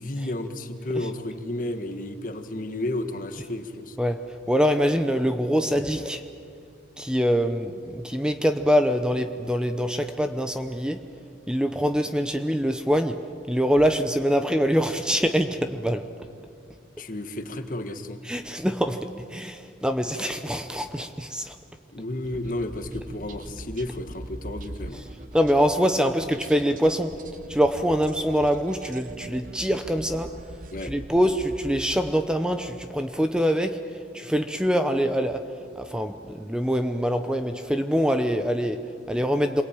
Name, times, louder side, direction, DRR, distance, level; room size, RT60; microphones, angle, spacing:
voice 1, 0.0-4.0 17.0-18.2 21.9-25.0 30.7-31.0, left 1 dB, 45° left, 8 dB, 1.6 m, -32 dB
voice 2, 4.0-6.2 7.0-11.1 11.5-16.1 18.2-21.6 25.3-27.2 27.5-30.3 30.8-39.6, equal, 5° right, 7 dB, 0.8 m, -24 dB
sound 1, 22.2-32.4, right 1 dB, 45° right, 1.1 m, -42 dB
27.5 x 22.0 x 8.9 m, 2.4 s
head